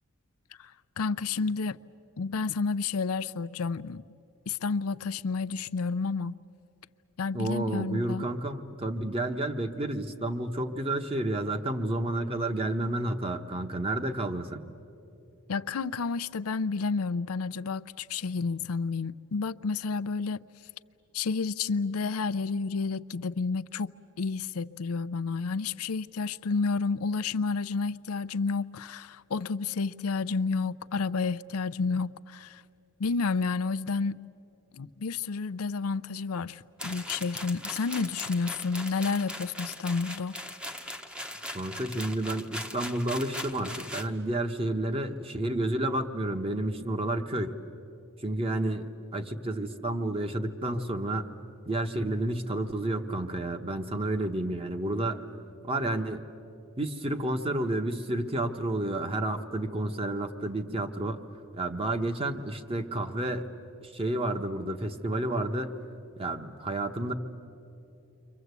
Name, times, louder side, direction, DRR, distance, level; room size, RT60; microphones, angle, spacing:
voice 1, 0.6-1.8 2.2-4.0 4.5-6.4 7.2-8.2 15.5-20.4 21.1-32.6 33.0-34.2 34.7-40.4, left 4 dB, 80° left, 0.5 m, -30 dB
voice 2, 7.3-14.6 41.5-47.5 48.2-51.3 51.7-55.2 55.6-56.2 56.8-61.2 61.5-63.5 63.8-65.9 66.2-67.1, right 1 dB, 25° right, 1.1 m, -30 dB
sound 1, 36.8-44.1, left 1 dB, 5° right, 0.9 m, -39 dB
29.5 x 24.0 x 8.2 m
head